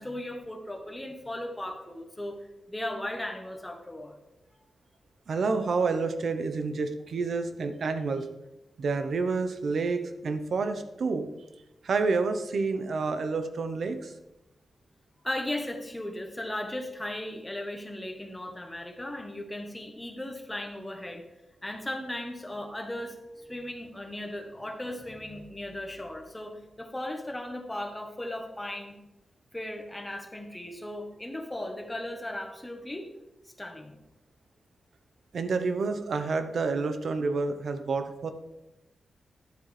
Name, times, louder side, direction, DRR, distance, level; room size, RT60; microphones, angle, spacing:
voice 1, 0.0-2.4 2.7-4.2 15.2-21.2 21.6-29.0 29.5-33.1 33.6-34.0, left 1 dB, 10° left, 4 dB, 1.2 m, -37 dB
voice 2, 5.3-8.3 8.8-11.3 11.8-14.1 35.3-38.3, right 4 dB, 65° right, 9 dB, 0.8 m, -29 dB
11.5 x 7.5 x 3.3 m, 0.97 s
wide cardioid pair, 125°, 0 cm